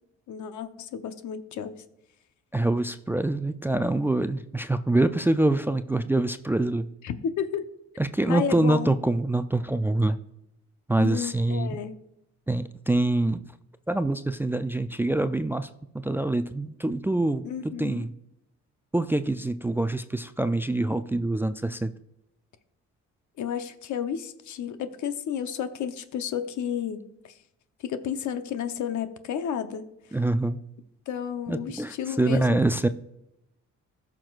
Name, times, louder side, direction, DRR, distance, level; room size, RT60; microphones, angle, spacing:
voice 1, 0.3-1.8 7.0-7.7 8.3-8.9 11.0-12.0 17.4-18.1 23.4-27.3 27.8-29.8 31.1-32.6, left 8 dB, 75° left, 10 dB, 0.9 m, -32 dB
voice 2, 2.5-6.9 8.0-10.2 10.9-11.8 12.5-13.4 13.9-15.7 16.0-17.5 17.8-18.1 18.9-21.9 30.1-30.6 31.5-32.9, right 2 dB, 5° right, 10 dB, 0.3 m, -25 dB
15.5 x 6.0 x 2.4 m, 0.83 s
cardioid pair, 90°, 30 cm